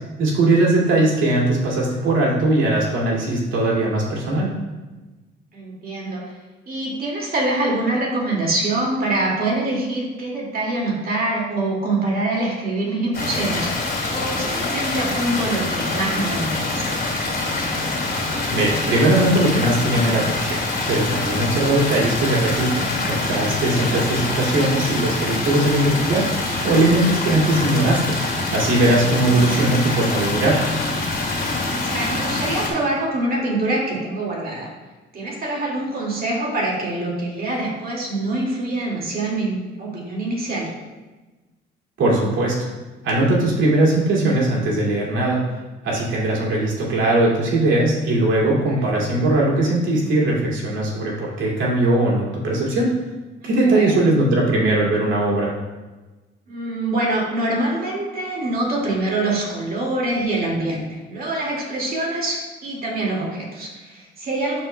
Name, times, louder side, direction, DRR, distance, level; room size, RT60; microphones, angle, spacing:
voice 1, 0.2-4.5 18.5-26.3 26.6-28.2 28.5-30.6 42.0-42.7 43.0-45.4 45.8-52.9 53.4-55.5, right 2 dB, 80° right, -4 dB, 2.2 m, -19 dB
voice 2, 5.5-6.2 6.7-13.7 14.1-17.0 28.9-29.5 31.8-34.7 35.1-40.7 48.7-48.9 53.4-53.9 56.5-64.6, right 2 dB, 50° right, -3 dB, 2.1 m, -25 dB
sound 1, 13.1-32.7, left 2 dB, 55° left, 2.2 m, -25 dB
12.0 x 4.4 x 2.2 m, 1.2 s
cardioid pair, 90°, 20 cm